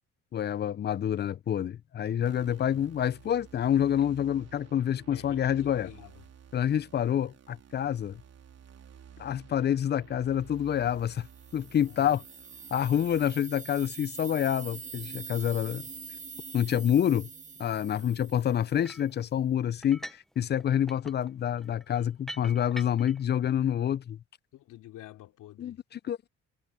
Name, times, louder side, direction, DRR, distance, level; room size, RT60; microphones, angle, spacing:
voice 1, 0.3-5.9 6.5-8.2 9.2-11.3 11.5-12.2 12.7-15.8 16.5-17.3 17.6-24.2 25.6-26.3, left 9 dB, 35° left, 0.4 m, -27 dB
sound 1, 2.3-13.3, right 8 dB, 55° right, 3.6 m, -53 dB
voice 2, 2.5-2.9 5.0-6.2 11.7-12.3 18.0-18.4 24.5-25.8, left 14 dB, 90° left, 3.3 m, -49 dB
sound 2, 11.0-18.9, right 4 dB, 25° right, 1.0 m, -44 dB
sound 3, 18.8-19.1 19.8-20.3 20.6-23.2, equal, ahead, 0.7 m, -44 dB
cardioid pair, 90°, 30 cm